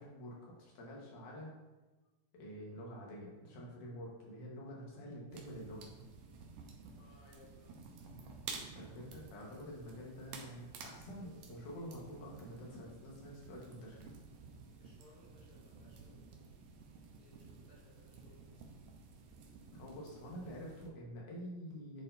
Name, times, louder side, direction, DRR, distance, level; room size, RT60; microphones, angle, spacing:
voice 1, 0.0-1.5 2.3-5.9 8.7-14.1 19.7-22.0, equal, 85° left, -3 dB, 2.9 m, -48 dB
sound 1, 5.3-20.9, right 4 dB, 75° right, 2.1 m, -53 dB
voice 2, 7.0-7.9 14.8-16.5 17.2-18.8, left 1 dB, 55° left, -5 dB, 2.0 m, -64 dB
10.0 x 4.5 x 2.7 m, 1.2 s
omnidirectional pair, 3.5 m